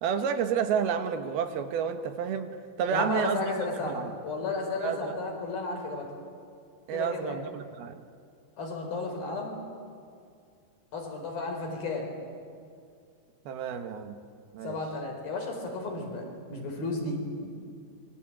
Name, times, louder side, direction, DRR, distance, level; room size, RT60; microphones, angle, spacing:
voice 1, 0.0-2.5 2.8-4.1 4.8-5.2 6.9-8.0 13.5-14.2 14.5-14.8, right 7 dB, 70° right, 8 dB, 3.2 m, -30 dB
voice 2, 2.9-4.0 4.2-6.1 6.9-7.4 8.6-9.5 10.9-12.1 14.6-17.5, left 3 dB, 60° left, 2 dB, 6.2 m, -33 dB
26.5 x 23.0 x 8.9 m, 2.3 s
omnidirectional pair, 4.7 m